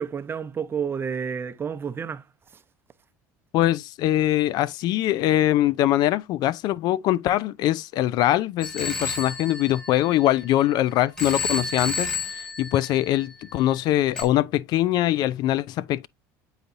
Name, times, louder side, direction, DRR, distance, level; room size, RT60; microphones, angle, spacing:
voice 1, 0.0-2.2, right 7 dB, 30° right, 0.6 m, -30 dB
voice 2, 3.5-16.1, left 14 dB, 60° left, 0.4 m, -23 dB
Telephone, 8.6-10.7 11.2-13.5 14.2-14.3, left 4 dB, 10° left, 1.9 m, -31 dB
9.0 x 4.0 x 2.6 m
supercardioid pair, 85°, 8 cm